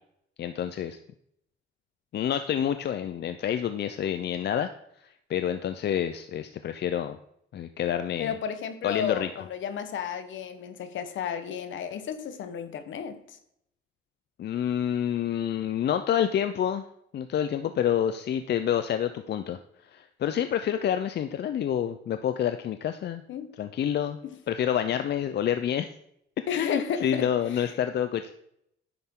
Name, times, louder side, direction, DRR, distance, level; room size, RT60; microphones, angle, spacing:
voice 1, 0.4-1.0 2.1-4.7 5.3-7.2 7.5-8.3 8.8-9.3 14.4-16.8 17.1-19.6 19.9-23.2 23.6-24.2 24.5-25.9 26.5-28.3, left 9 dB, 60° left, 9 dB, 0.6 m, -28 dB
voice 2, 8.2-13.4 23.3-23.5 26.5-27.3 27.5-27.7, left 7 dB, 75° left, 10 dB, 1.1 m, -33 dB
10.5 x 7.8 x 3.8 m, 0.73 s
cardioid pair, 90°, 20 cm